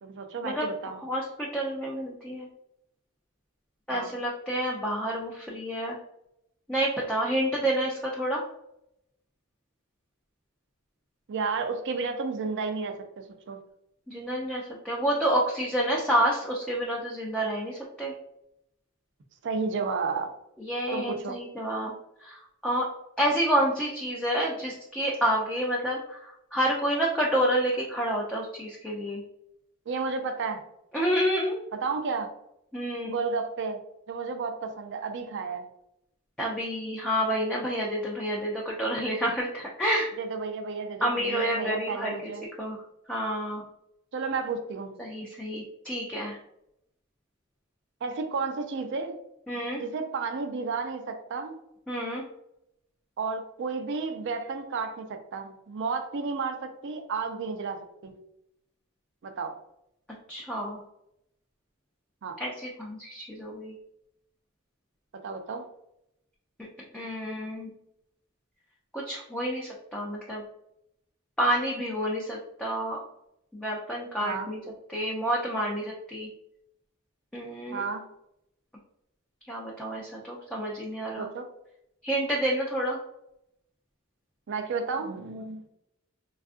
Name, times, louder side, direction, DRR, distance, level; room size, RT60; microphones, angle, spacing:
voice 1, 0.0-1.0 3.9-4.2 11.3-13.6 19.4-20.3 20.9-21.4 29.9-30.6 31.7-32.3 33.0-33.8 34.1-35.7 40.2-42.4 44.1-45.0 48.0-49.2 49.8-51.6 53.2-58.2 59.2-59.5 62.2-62.4 65.2-65.6 74.2-74.5 77.7-78.0 81.2-81.4 84.5-85.6, right 4 dB, 60° right, 7 dB, 0.4 m, -32 dB
voice 2, 1.0-2.5 3.9-6.0 6.7-8.4 14.1-18.1 20.6-21.9 22.2-22.9 23.2-29.2 30.9-31.6 32.7-33.2 36.4-40.1 41.0-42.1 42.6-42.8 43.1-43.6 45.0-46.4 49.5-49.8 51.9-52.2 60.3-60.8 62.4-63.7 66.9-67.7 68.9-70.4 71.4-73.0 73.5-74.6 74.9-76.3 77.3-77.8 79.5-81.3 82.0-83.0, equal, 5° left, -4 dB, 0.4 m, -29 dB
3.5 x 2.4 x 2.4 m, 0.79 s
head